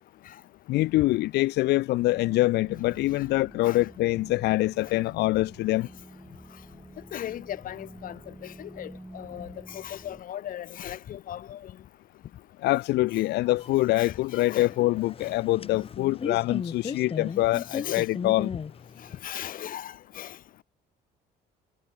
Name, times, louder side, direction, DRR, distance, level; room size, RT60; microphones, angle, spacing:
voice 1, 0.7-5.9 12.6-18.5, left 18 dB, 80° left, 1.4 m, -25 dB
sound 1, 2.0-10.2, right 1 dB, 5° right, 3.2 m, -48 dB
voice 2, 7.1-11.8 14.0-14.7 15.2-15.4 17.5-18.1 19.0-20.4, left 11 dB, 55° left, 1.6 m, -38 dB
sound 2, 13.1-19.2, left 6 dB, 35° left, 3.9 m, -37 dB
cardioid pair, 110°, 17 cm